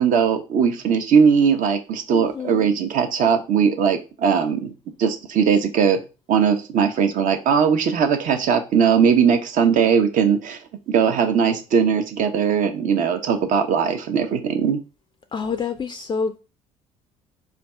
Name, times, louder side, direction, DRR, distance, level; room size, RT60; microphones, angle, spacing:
voice 1, 0.0-4.7 5.0-6.0 6.3-10.6 10.9-14.8, right 6 dB, 55° right, 0.7 m, -19 dB
voice 2, 2.1-2.7 15.3-16.4, left 5 dB, 25° left, 0.4 m, -27 dB
3.4 x 2.3 x 4.2 m
hypercardioid pair, 55°, 17 cm